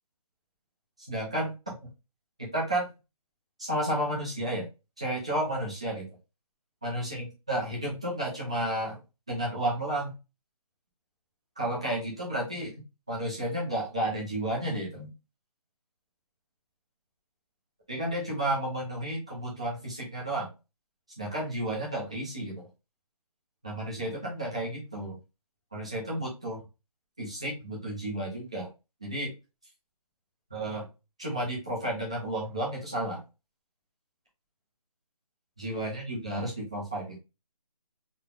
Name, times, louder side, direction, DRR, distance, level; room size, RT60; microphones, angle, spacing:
voice 1, 1.1-1.7 2.4-2.9 3.6-4.7 5.0-6.1 6.8-9.0 9.3-10.1 11.6-12.7 13.1-15.1 17.9-20.5 21.2-22.6 23.6-25.2 25.7-26.6 27.2-28.7 29.0-29.3 30.5-30.9 31.2-33.2 35.6-37.2, right 1 dB, 10° right, -5 dB, 0.5 m, -32 dB
3.8 x 2.1 x 3.6 m, 0.28 s
hypercardioid pair, 175°, 19 cm